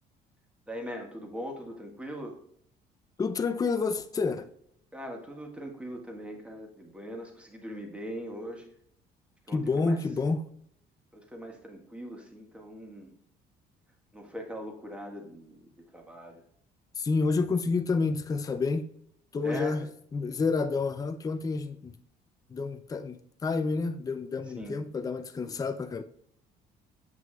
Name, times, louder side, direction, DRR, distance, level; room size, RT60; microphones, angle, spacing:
voice 1, 0.7-2.4 4.9-8.7 9.5-10.0 11.1-13.1 14.1-16.4 19.4-19.9 24.5-24.8, equal, 5° right, 1.6 m, -41 dB
voice 2, 3.2-4.5 9.5-10.4 17.0-18.9 19.3-19.8 20.1-21.9 22.5-26.0, left 4 dB, 20° left, 0.5 m, -29 dB
7.6 x 5.9 x 2.4 m
cardioid pair, 110°, 17 cm